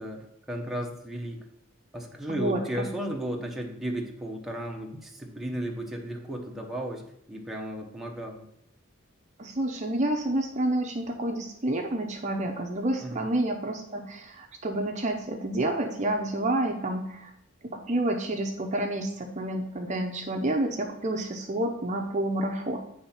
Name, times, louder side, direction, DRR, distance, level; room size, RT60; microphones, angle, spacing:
voice 1, 0.0-1.4 1.9-7.0 7.3-8.5 13.0-13.3, right 1 dB, ahead, 0 dB, 0.8 m, -34 dB
voice 2, 2.3-2.9 9.4-17.3 17.6-22.8, right 1 dB, 35° right, 3 dB, 0.6 m, -29 dB
8.6 x 3.4 x 5.6 m, 0.75 s
head